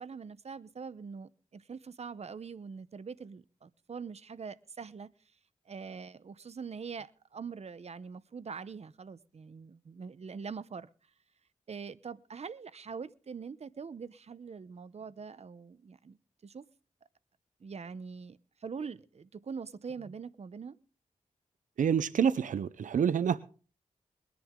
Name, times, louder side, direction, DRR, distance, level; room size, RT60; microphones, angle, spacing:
voice 1, 0.0-5.1 5.7-10.9 11.7-16.6 17.6-20.8, right 5 dB, 55° right, 0.8 m, -43 dB
voice 2, 21.8-23.5, right 7 dB, 85° right, 0.6 m, -28 dB
21.5 x 10.5 x 3.7 m
cardioid pair, 65°, 13 cm